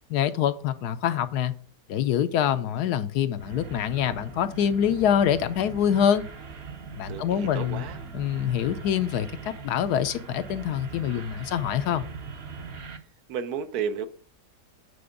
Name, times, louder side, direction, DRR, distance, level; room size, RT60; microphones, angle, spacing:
voice 1, 0.1-1.5 1.9-6.2 7.0-7.8 8.1-9.3 9.6-12.1, left 9 dB, 75° left, 1.1 m, -25 dB
sound 1, 3.4-13.0, right 4 dB, 45° right, 0.9 m, -40 dB
voice 2, 7.1-8.0 13.3-14.1, right 7 dB, 70° right, 1.1 m, -32 dB
8.6 x 4.3 x 5.0 m
omnidirectional pair, 1.8 m